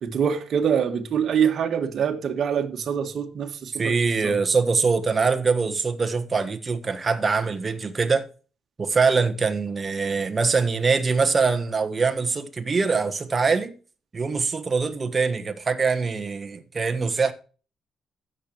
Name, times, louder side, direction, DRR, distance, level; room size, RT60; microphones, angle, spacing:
voice 1, 0.0-4.4, right 7 dB, 60° right, 1.6 m, -25 dB
voice 2, 3.8-8.2 8.8-13.7 14.1-17.3, right 4 dB, 30° right, 1.4 m, -23 dB
16.0 x 6.8 x 3.1 m
cardioid pair, 90°, 0 cm